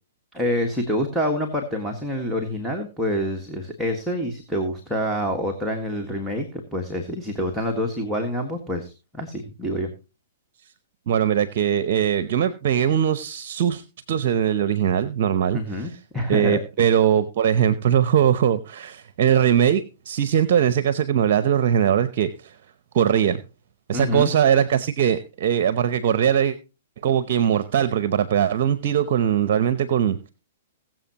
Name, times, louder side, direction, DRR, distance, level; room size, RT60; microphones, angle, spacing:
voice 1, 0.3-9.9 15.5-16.6 23.9-24.3, equal, ahead, -1 dB, 1.7 m, -27 dB
voice 2, 11.1-13.8 14.1-15.6 16.3-22.6 22.9-23.4 23.9-26.6 27.0-30.3, right 9 dB, 55° right, 14 dB, 0.7 m, -21 dB
21.0 x 7.5 x 2.9 m, 0.31 s
hypercardioid pair, 120°, 0 cm